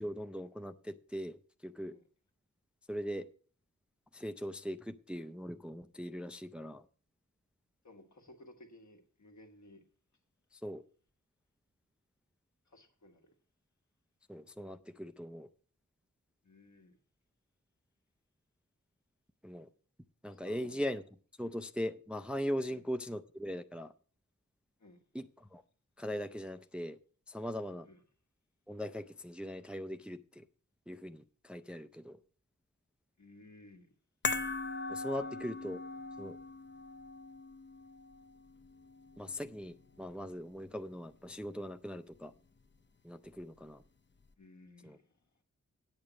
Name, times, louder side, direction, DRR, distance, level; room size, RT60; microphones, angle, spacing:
voice 1, 0.0-2.0 2.9-3.3 4.1-6.8 10.5-10.8 14.3-15.5 19.4-19.7 20.2-21.0 21.4-23.9 25.1-25.6 26.0-27.0 27.3-27.9 28.7-30.4 30.9-32.2 34.9-35.8 36.2-36.4 39.2-42.3 43.0-43.8 44.8-45.0, equal, 5° right, 0.4 m, -40 dB
voice 2, 7.8-9.8 12.7-13.3 16.4-17.0 20.3-20.9 22.6-22.8 24.8-25.0 27.8-28.0 33.2-33.9 44.4-45.2, left 1 dB, 65° left, 1.5 m, -57 dB
sound 1, 34.2-40.7 40.9-41.1, left 3 dB, 35° left, 0.7 m, -41 dB
8.8 x 8.0 x 6.1 m
wide cardioid pair, 90°, 31 cm